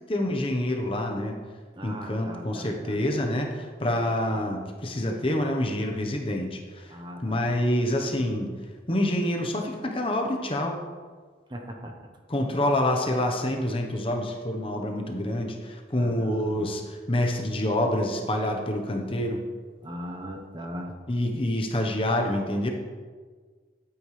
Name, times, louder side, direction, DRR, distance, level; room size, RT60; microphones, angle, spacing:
voice 1, 0.1-1.4 1.8-8.5 8.9-10.8 12.3-19.4 21.1-22.7, left 1 dB, 30° left, 2 dB, 1.0 m, -27 dB
voice 2, 1.7-3.0 3.8-4.0 6.9-7.6 11.5-11.9 16.0-16.7 19.8-20.9, equal, 25° right, 2 dB, 0.9 m, -39 dB
13.0 x 8.8 x 3.3 m, 1.5 s
head